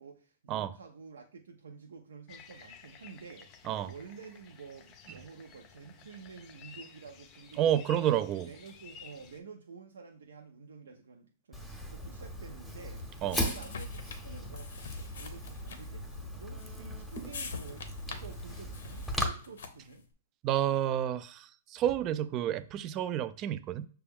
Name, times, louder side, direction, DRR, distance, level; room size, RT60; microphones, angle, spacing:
voice 1, 0.0-8.1 8.4-11.6 11.9-13.0 13.4-20.1, right 5 dB, 80° right, 0.5 m, -50 dB
sound 1, 2.3-9.4, left 6 dB, 35° left, 0.5 m, -54 dB
voice 2, 7.6-8.5 13.2-13.4 20.4-23.9, right 11 dB, 30° right, 0.3 m, -30 dB
Fire, 11.5-19.3, equal, ahead, 0.8 m, -38 dB
sound 2, 12.5-20.0, left 5 dB, 75° left, 0.7 m, -46 dB
5.9 x 2.2 x 3.5 m
hypercardioid pair, 130°, 0 cm